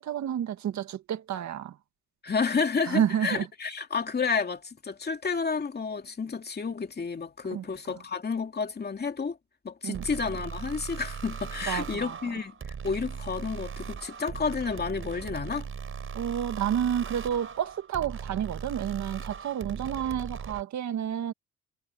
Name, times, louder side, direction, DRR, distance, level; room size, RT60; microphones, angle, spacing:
voice 1, 0.0-1.8 2.9-3.5 7.5-7.6 9.8-10.0 11.7-12.2 16.1-21.3, right 9 dB, 65° right, 1.8 m, -30 dB
voice 2, 2.2-9.4 9.6-15.7, left 5 dB, 35° left, 2.5 m, -31 dB
sound 1, 9.9-20.6, right 6 dB, 45° right, 4.7 m, -39 dB
cardioid pair, 90°, 30 cm